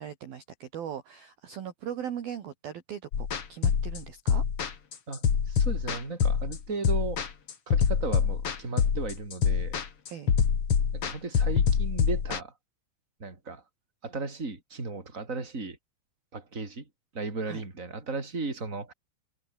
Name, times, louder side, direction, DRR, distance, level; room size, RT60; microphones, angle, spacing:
voice 1, 0.0-4.4 10.1-10.3 17.5-17.6, right 9 dB, 55° right, 3.4 m, -39 dB
sound 1, 3.1-12.4, left 7 dB, 45° left, 2.1 m, -25 dB
voice 2, 5.1-7.2 7.7-9.7 10.9-12.5 13.2-13.6 14.0-15.8 16.3-16.8 17.1-18.9, right 3 dB, 15° right, 4.6 m, -35 dB
omnidirectional pair, 5.9 m